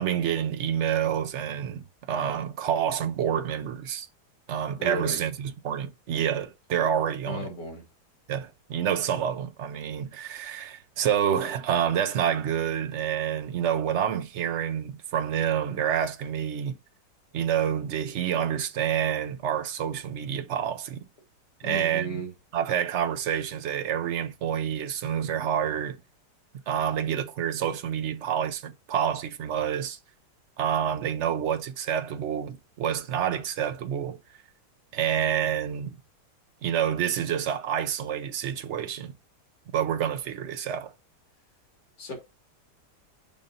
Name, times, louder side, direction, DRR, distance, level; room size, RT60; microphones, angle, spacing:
voice 1, 0.0-4.1 4.5-7.5 8.3-16.7 17.3-21.1 21.6-22.2 22.5-26.0 26.7-30.0 30.6-34.2 34.9-36.0 36.6-39.1 39.7-40.9, right 9 dB, 70° right, 0.7 m, -28 dB
voice 2, 4.8-5.2 7.3-7.8 21.6-22.3 42.0-42.1, right 1 dB, 70° left, 2.8 m, -34 dB
6.9 x 2.6 x 5.3 m
omnidirectional pair, 1.9 m